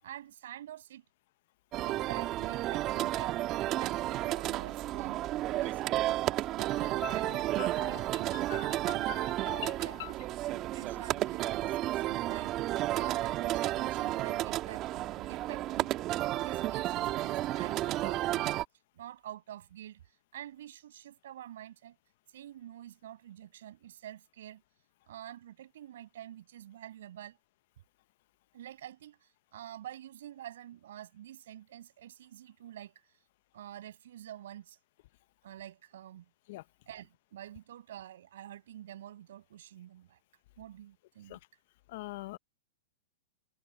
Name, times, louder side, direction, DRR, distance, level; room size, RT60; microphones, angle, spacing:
voice 1, 0.0-1.0 1.8-3.3 3.8-5.2 5.5-9.1 9.8-12.5 13.0-16.0 16.4-18.6 18.9-20.0 20.3-22.0 22.3-24.6 25.1-27.4 28.5-32.9 33.5-34.8 35.4-36.3 36.9-40.2 40.6-41.4, right 12 dB, 70° right, 8.0 m, -48 dB
sound 1, 1.7-18.6, right 15 dB, 35° right, 1.8 m, -32 dB
voice 2, 7.0-8.0 8.3-8.8 9.1-10.1 36.5-36.6 41.3-41.4 41.9-42.4, left 18 dB, 60° left, 0.8 m, -43 dB
open air
hypercardioid pair, 120°, 0 cm